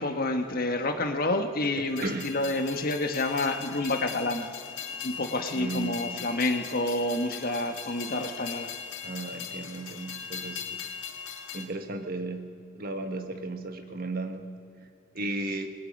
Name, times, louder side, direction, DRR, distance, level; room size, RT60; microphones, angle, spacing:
voice 1, 0.0-4.5 5.0-8.7, left 2 dB, 45° left, 6 dB, 1.4 m, -29 dB
Train, 1.9-11.7, left 7 dB, 70° left, 1.8 m, -39 dB
voice 2, 2.0-2.3 5.5-6.3 9.0-10.8 11.5-12.5 12.8-14.4 15.1-15.7, right 2 dB, 45° right, 6 dB, 1.5 m, -35 dB
27.5 x 21.0 x 5.4 m, 2.4 s
head